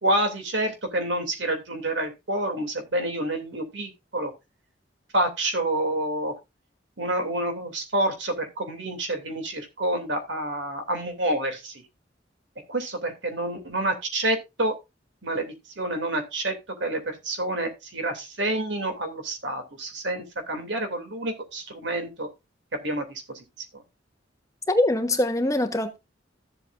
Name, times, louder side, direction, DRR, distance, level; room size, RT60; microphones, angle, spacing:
voice 1, 0.0-4.3 5.1-6.3 7.0-11.7 12.7-14.8 15.2-16.5 16.8-22.3 22.8-23.4 23.7-23.8, right 1 dB, 80° right, 2.9 m, -28 dB
voice 2, 24.7-26.0, left 1 dB, 20° left, 1.2 m, -23 dB
14.0 x 7.7 x 2.6 m
head